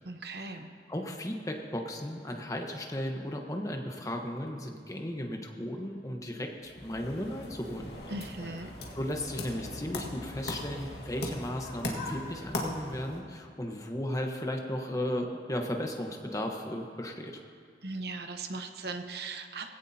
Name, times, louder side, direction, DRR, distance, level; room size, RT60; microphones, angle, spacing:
voice 1, 0.0-0.7 8.1-8.7 17.8-19.7, right 3 dB, 65° right, 6 dB, 1.0 m, -38 dB
voice 2, 0.9-7.9 9.0-17.4, left 1 dB, 20° left, 2 dB, 1.1 m, -35 dB
sound 1, 6.6-13.2, left 1 dB, 65° left, 1.8 m, -39 dB
18.5 x 16.5 x 2.8 m, 2.2 s
head